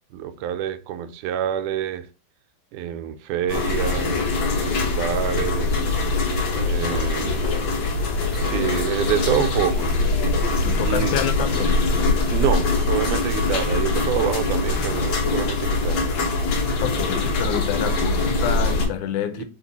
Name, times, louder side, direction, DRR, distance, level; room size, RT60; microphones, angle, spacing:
voice 1, 0.1-2.1 2.7-4.3 4.6-5.8 6.6-7.5 8.3-9.9 10.8-11.2 12.3-16.1 19.4-19.5, right 10 dB, 85° right, 2.1 m, -27 dB
sound 1, 3.5-18.9, left 3 dB, 60° left, 1.3 m, -23 dB
voice 2, 10.6-11.8 16.8-19.4, left 9 dB, 80° left, 2.0 m, -27 dB
5.8 x 4.4 x 4.1 m
omnidirectional pair, 3.6 m